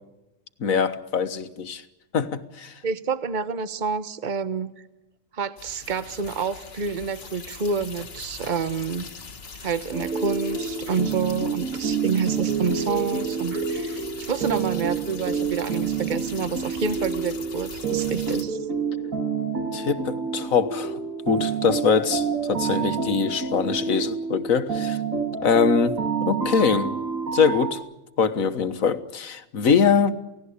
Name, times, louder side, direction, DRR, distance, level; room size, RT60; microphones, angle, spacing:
voice 1, 0.6-1.8 2.1-2.8 19.7-21.0 21.3-25.0 25.4-27.0 27.3-27.8 28.2-30.1, left 6 dB, 90° left, 10 dB, 1.7 m, -23 dB
voice 2, 2.8-4.8 5.3-9.0 9.6-18.6, right 5 dB, 35° right, 12 dB, 1.2 m, -28 dB
sound 1, 5.6-18.4, left 4 dB, 50° left, 1.9 m, -42 dB
sound 2, 9.9-27.7, right 6 dB, 85° right, 2.8 m, -28 dB
29.0 x 17.5 x 8.3 m, 0.97 s
omnidirectional pair, 1.4 m